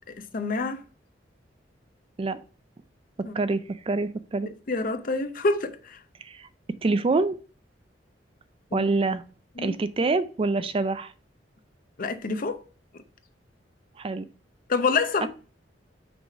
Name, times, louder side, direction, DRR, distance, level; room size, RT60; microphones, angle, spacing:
voice 1, 0.1-0.8 3.2-3.3 4.7-6.0 8.7-8.9 9.6-9.8 12.0-12.6 14.7-15.3, left 3 dB, 50° left, 0.7 m, -27 dB
voice 2, 3.3-4.5 6.2-6.5 6.8-7.4 8.7-9.2 9.6-11.1 14.0-14.3 15.2-15.3, right 3 dB, 30° right, 0.4 m, -26 dB
6.0 x 3.3 x 5.4 m
head